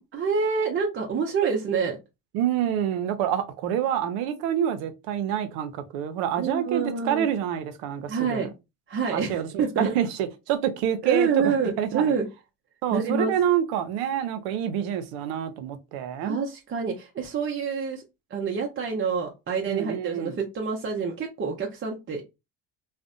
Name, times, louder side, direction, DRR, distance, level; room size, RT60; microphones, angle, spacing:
voice 1, 0.1-2.0 6.4-7.3 8.1-8.5 8.9-9.9 11.0-12.3 12.9-13.3 16.2-18.0 18.3-22.2, right 5 dB, 35° right, 0.6 m, -27 dB
voice 2, 2.3-8.5 9.1-12.1 12.8-16.4 19.7-20.4, right 10 dB, 85° right, 0.6 m, -27 dB
2.5 x 2.1 x 2.5 m
supercardioid pair, 80°, 37 cm